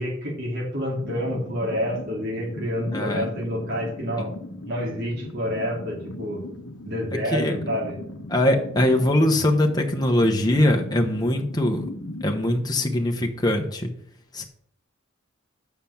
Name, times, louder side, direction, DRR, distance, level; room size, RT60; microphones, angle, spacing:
voice 1, 0.0-4.3 4.6-6.4 6.8-8.0, equal, 55° right, -3 dB, 3.1 m, -28 dB
sound 1, 1.0-13.6, left 1 dB, 80° left, 1.0 m, -38 dB
voice 2, 2.9-3.3 4.2-4.3 7.3-7.6 8.3-11.8 12.2-13.9 14.3-14.4, left 1 dB, 20° left, 3 dB, 1.0 m, -22 dB
7.5 x 5.9 x 7.1 m, 0.66 s
head